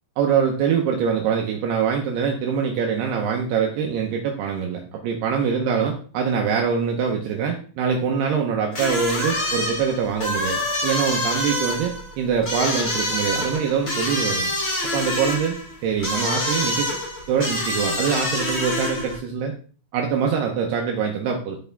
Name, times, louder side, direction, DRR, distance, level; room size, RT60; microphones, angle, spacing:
voice 1, 0.2-14.5 14.9-15.6 15.8-16.9 17.3-19.5 19.9-21.6, right 6 dB, 75° right, 2 dB, 2.7 m, -24 dB
sound 1, 8.7-19.2, left 1 dB, 35° left, 2.0 m, -26 dB
13.0 x 4.9 x 3.4 m, 0.42 s
omnidirectional pair, 5.1 m